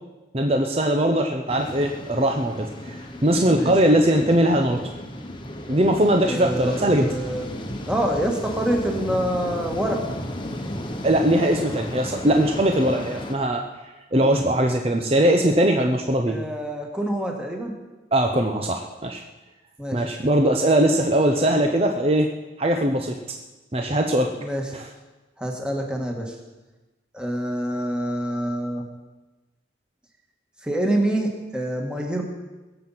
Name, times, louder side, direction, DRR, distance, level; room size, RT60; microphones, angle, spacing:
voice 1, 0.3-4.8 5.7-7.1 11.0-13.6 14.1-16.4 18.1-19.2 19.9-22.3 22.6-23.2 23.7-24.3 24.7-24.9, right 1 dB, 30° right, 3 dB, 0.8 m, -20 dB
sound 1, 1.5-13.3, left 1 dB, 25° left, 1.2 m, -34 dB
voice 2, 6.2-7.5 7.9-10.0 16.3-17.7 19.8-20.0 24.4-24.6 25.4-26.4 27.1-28.9 30.6-32.2, right 1 dB, 5° right, 1 dB, 1.8 m, -26 dB
21.5 x 7.8 x 5.8 m, 1.2 s
head